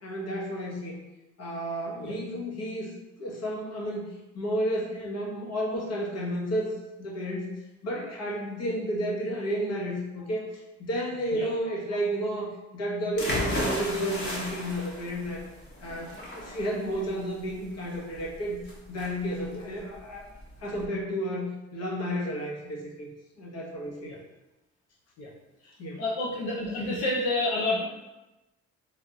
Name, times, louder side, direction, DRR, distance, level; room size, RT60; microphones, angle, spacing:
voice 1, 0.0-1.0 1.4-2.9 3.2-4.1 4.3-6.7 7.0-7.5 7.8-15.4 15.8-18.6 18.9-20.3 20.6-23.1 23.4-24.1 25.8-26.0, equal, 55° left, -3 dB, 1.2 m, -32 dB
sound 1, 13.2-20.8, equal, 35° left, 1.3 m, -35 dB
voice 2, 26.0-27.8, left 2 dB, 80° left, -6 dB, 0.9 m, -29 dB
3.4 x 3.1 x 3.8 m, 1.0 s
cardioid pair, 90°, 30 cm